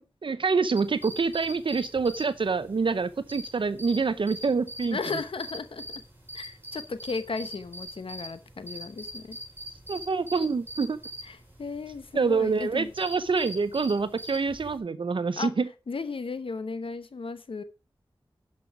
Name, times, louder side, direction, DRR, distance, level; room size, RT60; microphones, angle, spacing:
voice 1, 0.0-5.0 9.9-11.0 12.1-15.7, right 4 dB, 70° right, 0.6 m, -26 dB
sound 1, 0.7-14.8, equal, 20° right, 4.4 m, -43 dB
voice 2, 4.9-6.0 6.3-9.4 11.2-12.9 15.4-15.5 15.9-17.6, left 4 dB, 85° left, 0.9 m, -35 dB
12.0 x 5.4 x 4.8 m
wide cardioid pair, 70°, 9 cm